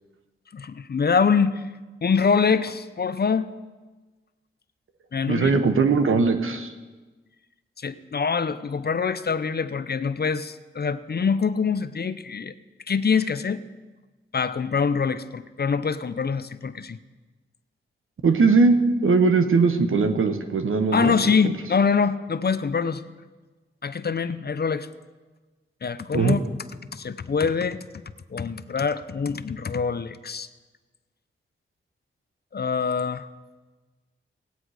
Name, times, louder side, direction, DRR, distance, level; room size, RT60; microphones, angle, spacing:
voice 1, 0.5-1.6 2.0-3.5 5.1-5.6 7.8-12.5 12.9-13.6 14.3-17.0 20.9-23.0 23.8-24.9 25.8-26.4 26.9-27.9 28.3-30.5 32.5-33.3, left 5 dB, 50° left, 13 dB, 0.7 m, -24 dB
voice 2, 5.3-6.7 18.2-21.2 26.1-26.4, right 4 dB, 75° right, 7 dB, 1.1 m, -20 dB
16.5 x 9.0 x 4.9 m, 1.3 s
cardioid pair, 50°, 21 cm